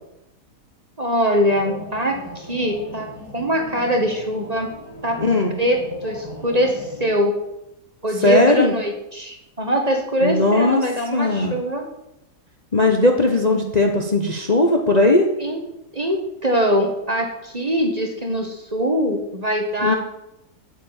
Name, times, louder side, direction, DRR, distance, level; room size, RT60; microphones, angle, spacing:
voice 1, 1.0-4.7 5.0-5.2 5.6-7.3 8.0-11.9 15.4-15.6 15.9-20.0, equal, 25° right, 3 dB, 1.7 m, -22 dB
sound 1, 1.4-7.1, left 1 dB, 90° left, 6.1 m, -38 dB
voice 2, 5.2-5.5 8.2-8.7 10.2-10.8 11.1-11.5 12.7-15.3 19.8-19.9, left 2 dB, 30° left, 2 dB, 1.2 m, -17 dB
8.9 x 7.9 x 9.1 m, 0.87 s
omnidirectional pair, 1.7 m